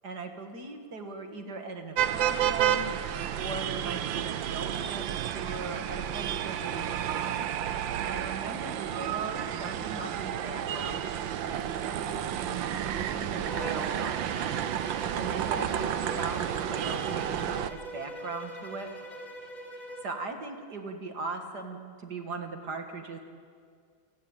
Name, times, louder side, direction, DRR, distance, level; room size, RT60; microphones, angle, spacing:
voice 1, 0.0-2.9 3.4-7.4 8.0-14.7 15.1-18.9 20.0-23.2, right 3 dB, 55° right, 5 dB, 2.5 m, -39 dB
sound 1, 2.0-17.7, right 10 dB, 75° right, 1.6 m, -31 dB
Bowed string instrument, 13.4-20.2, right 1 dB, 20° left, 2.5 m, -43 dB
29.5 x 17.0 x 9.0 m, 2.1 s
omnidirectional pair, 2.1 m